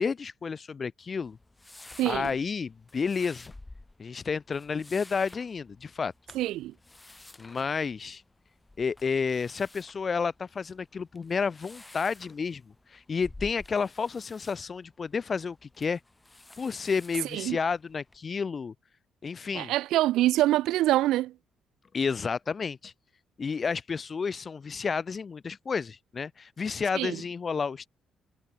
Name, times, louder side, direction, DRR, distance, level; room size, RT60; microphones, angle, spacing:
voice 1, 0.0-1.4 2.0-3.5 4.0-6.1 7.4-8.2 8.8-16.0 16.6-18.7 19.2-19.7 21.9-22.9 23.4-27.9, left 5 dB, 40° left, 1.5 m, -31 dB
sound 1, 1.2-18.2, left 2 dB, 15° left, 7.0 m, -52 dB
voice 2, 2.0-2.3 6.3-6.7 17.3-17.6 19.5-21.3 26.9-27.2, right 15 dB, 85° right, 1.3 m, -25 dB
cardioid pair, 90°, 0 cm